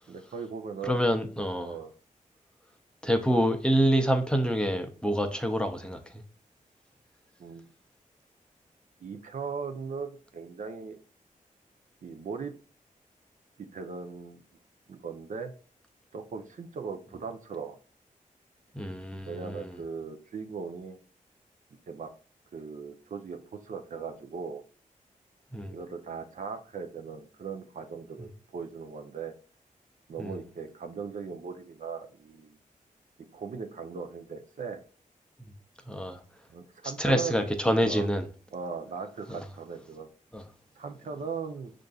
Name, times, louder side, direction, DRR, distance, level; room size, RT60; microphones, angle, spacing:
voice 1, 0.1-1.0 1.6-1.9 7.4-7.7 9.0-11.0 12.0-12.5 13.6-14.4 14.9-15.5 16.1-17.8 19.3-21.0 21.9-22.1 22.5-24.6 25.7-29.3 30.1-32.6 33.3-34.8 36.5-37.5 37.8-38.1 38.5-40.1 40.8-41.7, right 5 dB, 65° right, 0.6 m, -38 dB
voice 2, 0.8-1.8 3.0-6.2 18.7-19.8 25.5-25.7 30.2-30.4 35.9-36.2 37.0-38.3 39.3-39.4 40.3-40.5, equal, 5° left, 0.5 m, -27 dB
6.5 x 2.5 x 2.3 m
wide cardioid pair, 80°, 14 cm